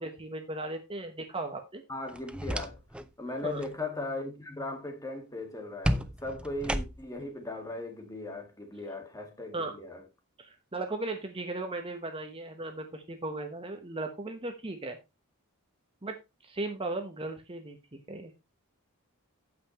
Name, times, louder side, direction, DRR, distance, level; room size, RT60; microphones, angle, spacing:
voice 1, 0.0-1.8 3.4-3.6 9.5-9.8 10.4-15.0 16.0-16.2 16.4-18.3, right 2 dB, 25° right, 1.1 m, -37 dB
voice 2, 1.9-2.8 3.2-10.0, left 2 dB, 15° left, 1.9 m, -38 dB
sound 1, 2.1-3.1 3.4-3.8 5.8-7.3, equal, 5° right, 0.5 m, -33 dB
16.0 x 5.8 x 3.1 m
head